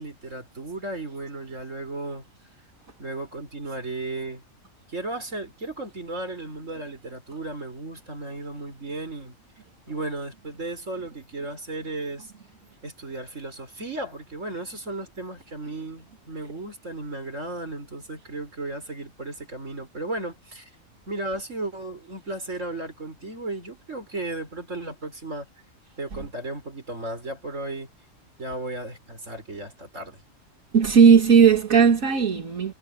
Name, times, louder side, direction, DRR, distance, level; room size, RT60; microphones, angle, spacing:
voice 1, 0.0-2.2 3.0-4.4 4.9-9.4 9.9-12.3 12.8-20.7 21.1-25.5 26.0-27.9 28.4-30.2, right 2 dB, 65° right, 5.8 m, -35 dB
voice 2, 30.7-32.7, right 6 dB, 90° right, 2.6 m, -17 dB
omnidirectional pair, 1.4 m